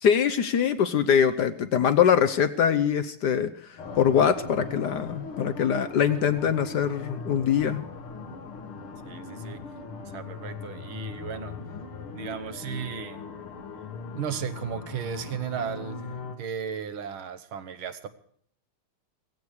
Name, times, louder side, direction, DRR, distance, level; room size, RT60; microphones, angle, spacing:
voice 1, 0.0-7.8, left 8 dB, 65° left, 1.2 m, -23 dB
sound 1, 3.8-16.4, left 4 dB, 80° left, 2.5 m, -39 dB
voice 2, 9.1-9.8 10.1-11.6 12.1-13.3 14.1-18.1, right 7 dB, 75° right, 2.0 m, -35 dB
17.0 x 15.5 x 4.8 m
omnidirectional pair, 2.3 m